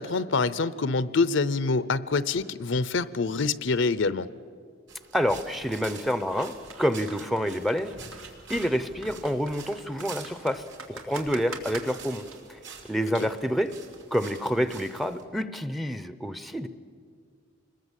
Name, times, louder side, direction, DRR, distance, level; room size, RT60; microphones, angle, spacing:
voice 1, 0.0-4.3 13.2-13.3, left 4 dB, 65° left, 16 dB, 0.7 m, -26 dB
sound 1, 4.9-15.2, right 5 dB, 60° right, 3.2 m, -47 dB
voice 2, 5.1-8.0 8.5-12.6 12.9-13.8 14.1-16.7, equal, ahead, 12 dB, 0.7 m, -28 dB
sound 2, 6.2-12.4, right 4 dB, 80° right, 3.0 m, -44 dB
26.5 x 21.0 x 8.3 m, 2.2 s
head